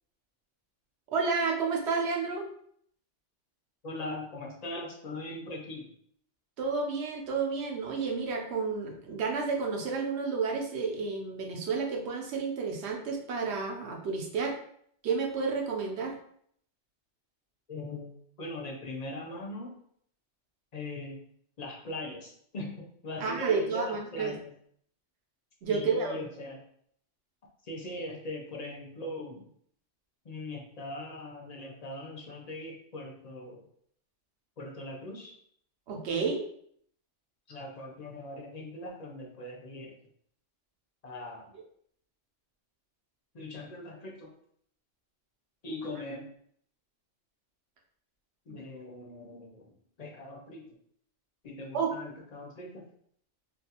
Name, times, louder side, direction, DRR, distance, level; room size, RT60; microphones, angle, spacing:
voice 1, 1.1-2.5 6.6-14.6 15.0-16.2 23.2-24.3 25.6-26.2 35.9-36.4 48.5-48.6 51.7-51.9, right 4 dB, 70° right, 1 dB, 0.8 m, -31 dB
voice 2, 3.8-5.9 17.7-18.1 18.4-19.8 20.7-21.2 21.6-24.5 25.7-26.6 27.6-29.5 30.2-33.6 34.6-35.3 37.5-39.9 41.0-41.5 43.3-44.3 45.6-46.3 48.5-49.7 50.0-50.7 51.4-52.8, left 1 dB, 50° left, -1 dB, 0.5 m, -40 dB
2.5 x 2.3 x 2.8 m, 0.64 s
omnidirectional pair, 1.3 m